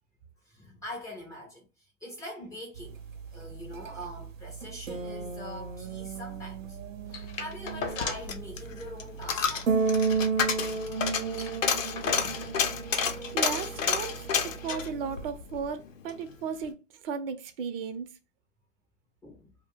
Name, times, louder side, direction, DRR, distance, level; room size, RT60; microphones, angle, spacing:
voice 1, 0.4-6.8 7.1-9.8 12.2-12.6 19.2-19.5, equal, 10° left, 0.4 m, -43 dB
sound 1, 2.8-15.3, right 4 dB, 90° right, 0.7 m, -34 dB
sound 2, 7.1-8.4 8.7-8.8 9.1-9.3 9.7-10.8 11.1-11.2 11.3-12.6 13.5-13.6, left 5 dB, 45° left, 0.8 m, -39 dB
Coin (dropping), 7.8-16.2 16.5-16.6, left 6 dB, 85° left, 0.6 m, -30 dB
voice 2, 13.0-14.2 14.4-16.8 17.0-18.1, right 6 dB, 50° right, 0.5 m, -35 dB
2.4 x 2.1 x 3.4 m
hypercardioid pair, 115°, 38 cm